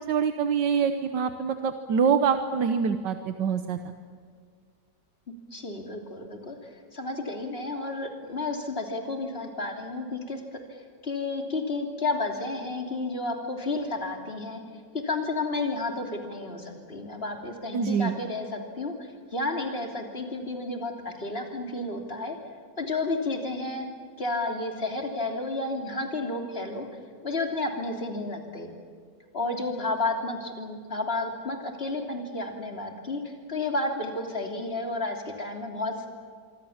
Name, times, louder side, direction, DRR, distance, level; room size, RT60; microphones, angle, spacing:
voice 1, 0.1-3.9 17.7-18.2, right 6 dB, 80° right, 8 dB, 1.7 m, -25 dB
voice 2, 5.5-6.6 6.9-10.6 11.0-14.6 15.0-18.9 19.3-22.4 22.8-23.9 24.2-26.9 27.2-28.7 29.3-36.1, left 2 dB, 35° left, 3 dB, 3.4 m, -31 dB
25.5 x 25.0 x 7.3 m, 2.1 s
omnidirectional pair, 1.9 m